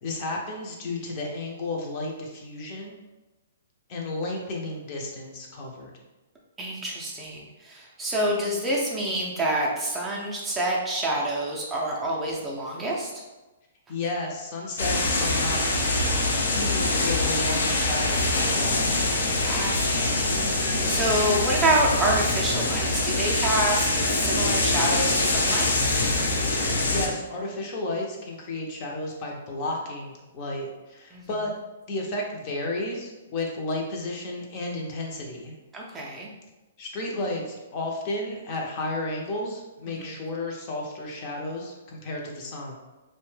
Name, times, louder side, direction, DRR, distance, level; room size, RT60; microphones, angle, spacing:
voice 1, 0.0-3.0 3.9-5.9 13.9-15.8 16.5-18.8 26.9-31.5 31.9-35.5 36.8-42.8, left 2 dB, 35° left, -1 dB, 0.6 m, -32 dB
voice 2, 6.6-13.1 19.4-25.7 31.1-31.3 35.7-36.3 39.9-40.2, right 1 dB, 10° right, -4 dB, 0.4 m, -27 dB
sound 1, 14.8-27.1, left 2 dB, 80° left, 0.6 m, -24 dB
2.7 x 2.1 x 3.1 m, 1.1 s
hypercardioid pair, 145°, 0 cm